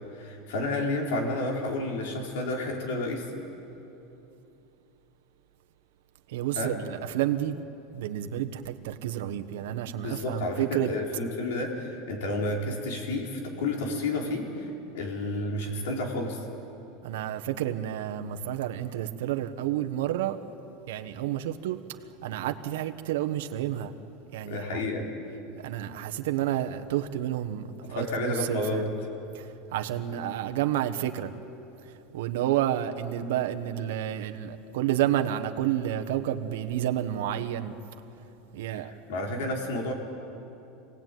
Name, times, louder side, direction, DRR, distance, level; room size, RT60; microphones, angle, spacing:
voice 1, 0.1-3.3 6.5-6.8 10.0-14.7 14.9-16.4 24.4-25.1 27.8-28.9 38.7-39.9, left 2 dB, 80° left, 0 dB, 4.6 m, -31 dB
voice 2, 6.3-7.6 7.9-10.9 17.0-20.4 20.9-21.8 22.2-23.9 24.3-24.8 25.5-28.9 29.3-29.5 29.7-31.3 32.1-37.7 38.5-38.9, right 12 dB, 75° right, 7 dB, 1.3 m, -30 dB
27.0 x 18.5 x 9.4 m, 2.9 s
supercardioid pair, 165°, 0 cm